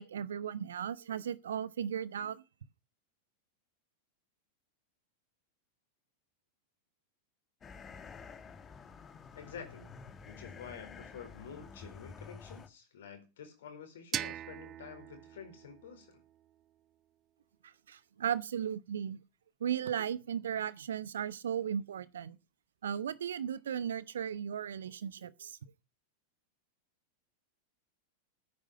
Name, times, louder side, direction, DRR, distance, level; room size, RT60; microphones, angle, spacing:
voice 1, 0.0-2.4 17.6-19.2 19.6-22.4 22.8-25.6, right 8 dB, 65° right, 0.9 m, -36 dB
sound 1, 7.6-12.7, left 5 dB, 20° left, 1.7 m, -50 dB
voice 2, 9.3-9.9 10.2-16.2, left 7 dB, 60° left, 4.5 m, -49 dB
sound 2, 14.1-17.0, right 11 dB, 30° right, 0.6 m, -42 dB
13.5 x 9.8 x 5.6 m
figure-of-eight pair, 90°, 0 cm